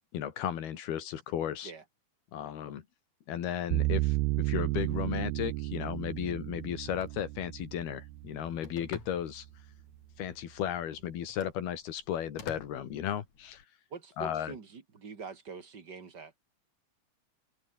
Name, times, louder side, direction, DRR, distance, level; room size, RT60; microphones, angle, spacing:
voice 1, 0.1-1.7 2.3-2.8 3.3-9.5 10.2-13.6 14.2-14.5, left 10 dB, 80° left, 4.1 m, -35 dB
sound 1, 3.7-8.8, right 20 dB, 85° right, 2.4 m, -33 dB
Telephone, 6.7-13.6, left 6 dB, 50° left, 4.5 m, -53 dB
voice 2, 13.9-16.4, right 5 dB, 35° right, 2.2 m, -45 dB
open air
omnidirectional pair, 4.5 m